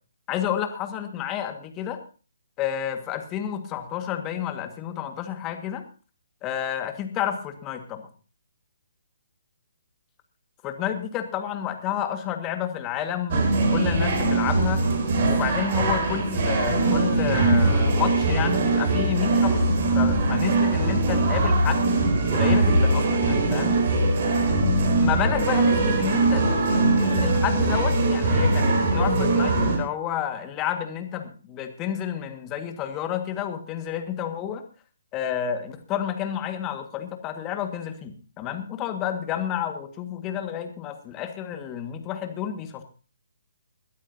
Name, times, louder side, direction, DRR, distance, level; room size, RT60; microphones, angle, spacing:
voice 1, 0.3-2.0 2.6-5.8 6.4-8.0 10.6-14.8 15.2-19.6 20.0-22.0 22.3-23.8 25.0-26.5 27.0-34.6 35.1-42.8, left 10 dB, 20° left, 7 dB, 1.8 m, -30 dB
sound 1, 13.3-29.8, right 2 dB, 45° right, 3.6 m, -21 dB
22.0 x 12.5 x 2.8 m, 0.36 s
figure-of-eight pair, 140°, 0 cm